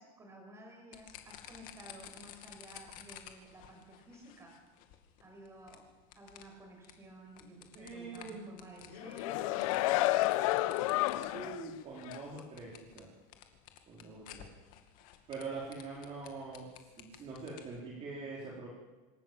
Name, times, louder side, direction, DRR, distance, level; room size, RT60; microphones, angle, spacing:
voice 1, 0.0-4.5 5.2-5.9 6.2-11.3, right 1 dB, 15° right, 2 dB, 6.2 m, -53 dB
sound 1, 0.9-17.8, left 11 dB, 55° left, 2.4 m, -54 dB
voice 2, 7.7-8.6 11.3-13.1 13.9-14.5 15.3-16.7 17.0-18.7, right 4 dB, 35° right, -4 dB, 4.4 m, -44 dB
sound 2, 8.9-11.7 12.1-12.2, left 17 dB, 85° left, 0.9 m, -30 dB
26.0 x 13.5 x 7.5 m, 1.2 s
cardioid pair, 155°, 17 cm